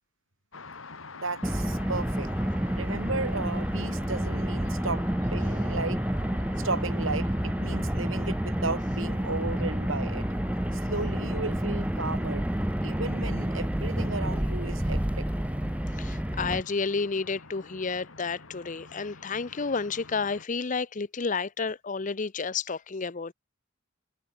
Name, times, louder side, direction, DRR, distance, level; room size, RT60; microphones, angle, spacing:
sound 1, 0.5-20.5, left 4 dB, 80° left, 2.4 m, -47 dB
voice 1, 1.1-2.3 2.7-5.0 5.3-6.0 6.6-10.2 10.7-12.5 12.8-15.3, right 3 dB, 80° right, 5.7 m, -34 dB
Car, 1.4-16.6, equal, 5° right, 0.5 m, -29 dB
voice 2, 16.0-23.3, left 4 dB, 40° left, 0.7 m, -31 dB
head